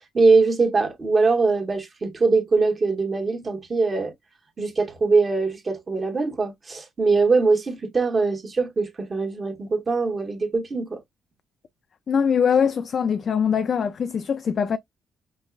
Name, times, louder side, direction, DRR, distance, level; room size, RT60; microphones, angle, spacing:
voice 1, 0.1-4.1 4.6-11.0, right 4 dB, 35° right, 1.2 m, -22 dB
voice 2, 12.1-14.8, left 7 dB, 50° left, 0.3 m, -22 dB
5.3 x 2.1 x 2.3 m
cardioid pair, 90°, 0 cm